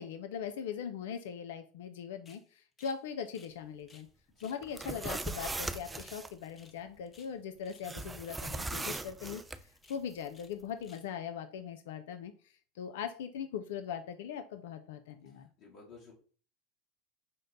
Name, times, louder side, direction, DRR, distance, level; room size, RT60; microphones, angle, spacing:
voice 1, 0.0-4.1 4.4-15.5, left 7 dB, 75° left, 9 dB, 0.4 m, -40 dB
sound 1, 2.2-2.4 2.8-3.0 3.2-4.1 4.4-4.6 4.9-6.2 6.5-6.8 7.0-7.9 8.2-8.5 8.7-8.9 9.2-9.4 9.8-10.5 10.8-11.1, left 4 dB, 30° left, 0.7 m, -61 dB
sound 2, 4.6-6.3 7.8-9.6, right 2 dB, 15° right, 0.4 m, -39 dB
voice 2, 15.2-16.1, left 4 dB, 50° left, -3 dB, 1.2 m, -55 dB
5.1 x 2.1 x 3.9 m, 0.41 s
hypercardioid pair, 90°, 0 cm